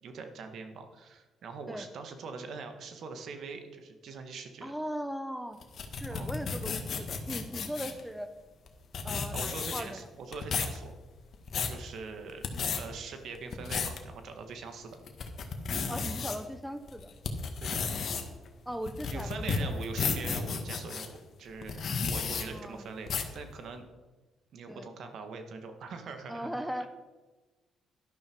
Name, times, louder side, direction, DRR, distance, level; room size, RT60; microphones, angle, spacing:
voice 1, 0.0-4.7 6.1-6.3 9.3-10.9 11.6-12.4 12.8-15.0 17.6-17.8 19.1-23.9 24.5-26.5 26.8-26.9, right 4 dB, 70° right, 6 dB, 1.8 m, -43 dB
voice 2, 4.6-5.6 5.9-8.3 9.0-10.1 12.5-12.8 15.9-17.1 18.7-19.8 22.2-22.9 24.7-24.9 26.3-26.9, equal, 5° right, 10 dB, 0.9 m, -39 dB
sound 1, 5.6-8.0 8.7-8.8 8.9-10.0 10.3-10.8 11.2-11.8 12.3-12.8 13.3-14.0 14.5-14.6 15.1-16.4 16.9-21.1 21.6-22.4 23.1-23.4, left 5 dB, 55° left, 1.7 m, -33 dB
12.0 x 11.5 x 4.7 m, 1.2 s
cardioid pair, 90°, 0 cm